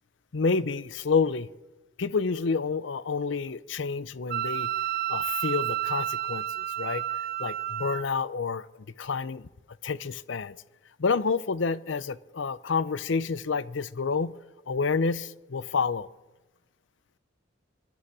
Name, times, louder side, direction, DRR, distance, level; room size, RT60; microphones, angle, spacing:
voice 1, 0.3-1.5 2.0-4.7 5.1-7.0 7.4-8.7 9.0-9.5 9.8-10.6 11.0-14.3 14.7-16.1, left 4 dB, 75° left, 17 dB, 0.6 m, -28 dB
Wind instrument woodwind instrument, 4.3-8.0, right 12 dB, 55° right, 0.5 m, -30 dB
25.0 x 11.5 x 4.8 m, 1.1 s
head